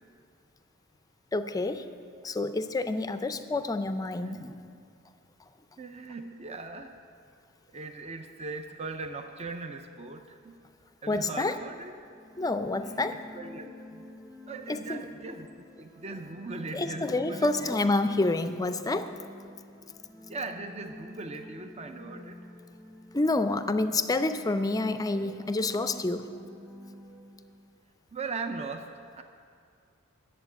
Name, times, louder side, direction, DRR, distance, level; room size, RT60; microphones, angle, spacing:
voice 1, 1.3-1.9 2.2-4.6 11.1-11.6 12.4-13.2 14.7-15.1 16.7-19.1 23.1-26.3, left 2 dB, 20° left, 10 dB, 0.5 m, -28 dB
voice 2, 5.8-7.0 7.7-10.6 11.0-11.9 12.8-13.0 13.3-14.1 14.5-17.7 18.0-18.2 20.3-22.4 28.1-29.2, right 3 dB, 30° right, 5 dB, 0.5 m, -39 dB
sound 1, 12.1-27.8, left 1 dB, 10° right, 1.1 m, -47 dB
11.0 x 7.5 x 8.2 m, 2.3 s
head